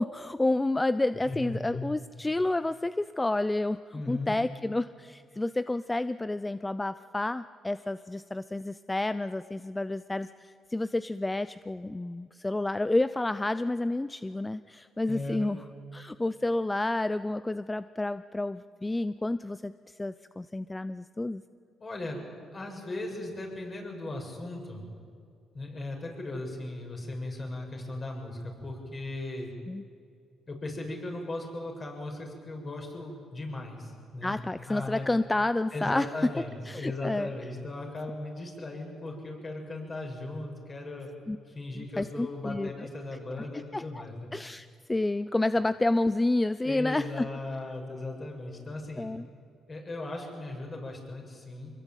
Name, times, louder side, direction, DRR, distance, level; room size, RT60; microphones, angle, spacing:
voice 1, 0.0-3.8 4.1-15.6 15.9-19.7 20.0-21.4 29.7-29.8 34.2-36.1 36.7-37.3 41.3-41.4 41.8-42.9 43.7-44.0 44.3-47.3 49.0-49.3, left 2 dB, 15° left, 14 dB, 0.5 m, -30 dB
voice 2, 1.3-1.9 3.9-4.4 15.1-15.5 21.8-22.2 22.5-24.8 25.5-29.5 30.5-34.3 34.7-35.1 35.7-41.1 41.5-44.3 46.6-49.1 49.7-51.7, left 2 dB, 35° left, 1 dB, 7.2 m, -37 dB
25.0 x 21.5 x 9.0 m, 2.4 s
cardioid pair, 90°, 0 cm